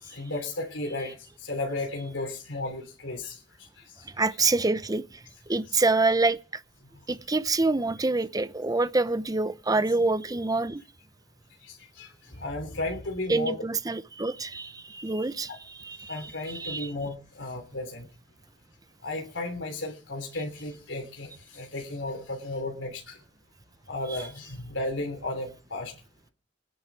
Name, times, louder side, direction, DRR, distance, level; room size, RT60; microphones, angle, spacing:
voice 1, 0.0-3.4 3.8-4.3 5.7-5.8 11.6-13.6 15.5-15.6 16.1-18.1 19.0-23.2 23.9-25.9, left 2 dB, 85° left, 3.3 m, -34 dB
voice 2, 4.2-5.0 5.5-6.6 7.1-10.8 13.3-16.9, right 3 dB, 20° right, 0.7 m, -26 dB
20.0 x 10.0 x 6.1 m
head